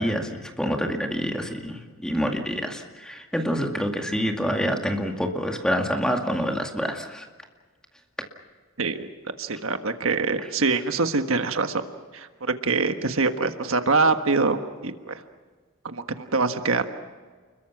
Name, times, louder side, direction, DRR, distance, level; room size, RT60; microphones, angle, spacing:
voice 1, 0.0-7.3, equal, 5° left, 3 dB, 2.2 m, -27 dB
voice 2, 8.8-9.1 9.4-11.8 12.1-15.2 15.8-16.9, right 3 dB, 75° right, 7 dB, 1.5 m, -24 dB
30.0 x 22.0 x 6.0 m, 1.5 s
head